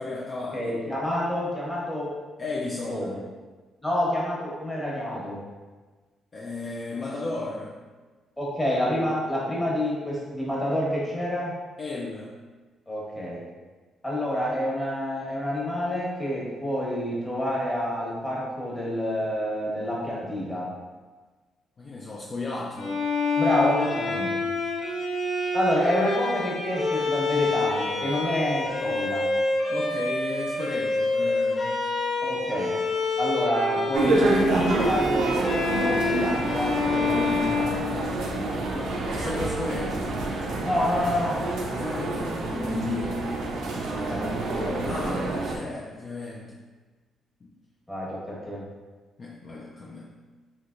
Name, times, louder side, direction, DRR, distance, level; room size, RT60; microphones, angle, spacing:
voice 1, 0.0-0.7 2.4-3.1 6.3-7.8 11.8-12.3 21.8-23.0 29.7-31.9 38.7-40.1 41.7-43.3 44.8-46.6 47.4-47.5 49.2-50.1, left 3 dB, 40° left, -4 dB, 0.4 m, -34 dB
voice 2, 0.5-2.1 2.9-3.2 3.8-5.4 8.4-11.5 12.9-13.4 14.0-20.7 23.4-24.4 25.5-29.3 32.2-32.7 33.2-37.7 40.6-41.4 43.8-44.8 47.9-48.6, equal, 10° left, -5 dB, 1.1 m, -28 dB
Bowed string instrument, 22.8-38.5, left 3 dB, 60° left, 0.8 m, -27 dB
sound 1, 33.9-45.6, right 2 dB, 75° right, 0.5 m, -28 dB
3.3 x 2.8 x 2.5 m, 1.3 s
cardioid pair, 90°, 0 cm